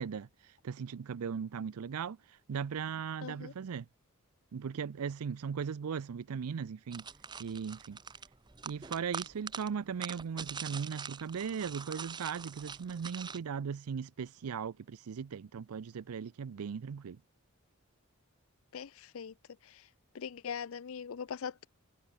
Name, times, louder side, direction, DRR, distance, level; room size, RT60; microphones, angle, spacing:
voice 1, 0.0-3.9 4.5-7.0 7.4-8.0 8.6-17.2, right 6 dB, 90° right, 0.4 m, -38 dB
voice 2, 3.2-3.5 18.7-19.3 19.6-19.8 20.1-21.7, left 7 dB, 70° left, 0.5 m, -41 dB
sound 1, 6.9-13.4, right 6 dB, 20° right, 0.6 m, -44 dB
head